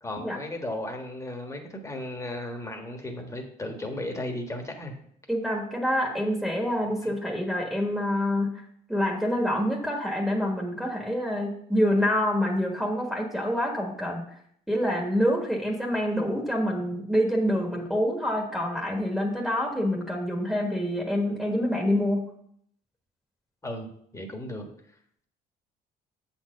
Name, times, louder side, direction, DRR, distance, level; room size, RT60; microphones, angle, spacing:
voice 1, 0.0-4.9 7.0-7.1 23.6-24.7, left 1 dB, 20° left, 3 dB, 1.4 m, -35 dB
voice 2, 5.3-8.6 8.9-14.2 14.7-22.3, equal, ahead, -1 dB, 1.4 m, -26 dB
7.5 x 4.4 x 6.5 m, 0.68 s
cardioid pair, 110°, 17 cm